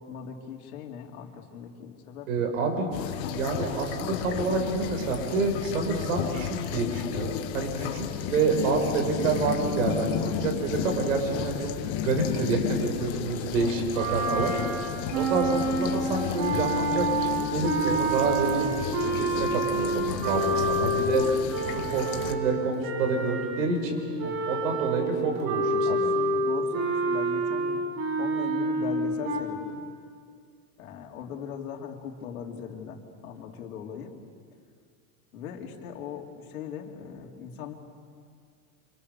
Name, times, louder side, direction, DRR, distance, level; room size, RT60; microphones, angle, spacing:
voice 1, 0.0-2.5 12.9-13.1 13.6-13.9 14.2-14.7 18.6-19.1 20.5-20.7 24.2-24.6 25.8-27.8 28.2-29.8 30.8-34.1 35.3-37.7, left 7 dB, 90° left, 1 dB, 3.8 m, -39 dB
voice 2, 2.3-2.9 3.3-11.5 12.0-14.5 15.1-21.4 21.6-24.0 24.5-26.1, right 4 dB, 65° right, 3 dB, 6.0 m, -28 dB
sound 1, 2.9-22.3, left 10 dB, 35° left, 1.3 m, -33 dB
sound 2, 13.9-23.8 24.2-29.4, right 2 dB, 80° right, 7.3 m, -28 dB
28.5 x 28.0 x 7.0 m, 2.2 s
supercardioid pair, 175°, 42 cm